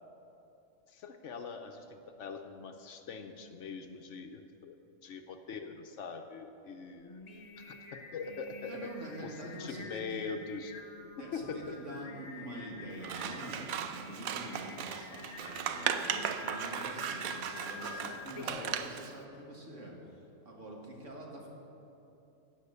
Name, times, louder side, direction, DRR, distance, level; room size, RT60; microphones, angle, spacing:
voice 1, 0.9-4.8 5.0-7.2 7.6-8.9 9.2-10.8 11.3-11.7 18.4-18.8, left 5 dB, 65° left, 6 dB, 0.9 m, -43 dB
Singing, 7.0-18.8, left 4 dB, 35° left, 0.7 m, -48 dB
voice 2, 8.7-10.2 11.2-21.5, right 1 dB, 60° right, -1 dB, 2.2 m, -46 dB
Scissors, 13.0-19.1, right 9 dB, 90° right, 1.1 m, -37 dB
16.5 x 5.7 x 6.8 m, 2.9 s
omnidirectional pair, 1.4 m